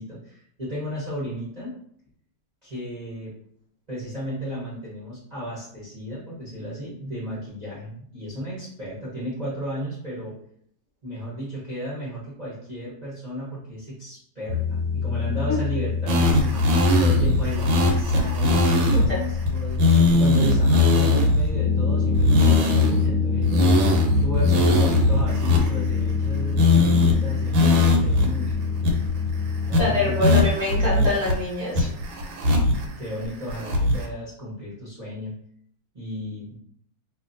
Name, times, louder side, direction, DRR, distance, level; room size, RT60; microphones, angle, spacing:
voice 1, 0.0-1.7 2.6-3.3 3.9-10.4 11.0-23.7 24.2-28.9 29.7-30.4 32.8-35.3 35.9-36.5, equal, 35° right, -8 dB, 0.7 m, -34 dB
sound 1, 14.5-30.5, left 5 dB, 65° right, 1.0 m, -26 dB
sound 2, 16.1-19.1 19.5-19.6 19.8-21.5 22.1-23.1 23.4-26.3 26.6-27.1 27.5-28.3 28.5-28.6 28.8-29.3 29.7-29.8 30.2-31.3 31.8-32.9 33.2-34.1, left 2 dB, 80° right, 1.4 m, -20 dB
voice 2, 29.8-31.9, left 2 dB, 30° left, -8 dB, 0.5 m, -25 dB
2.8 x 2.6 x 2.5 m, 0.65 s
omnidirectional pair, 2.1 m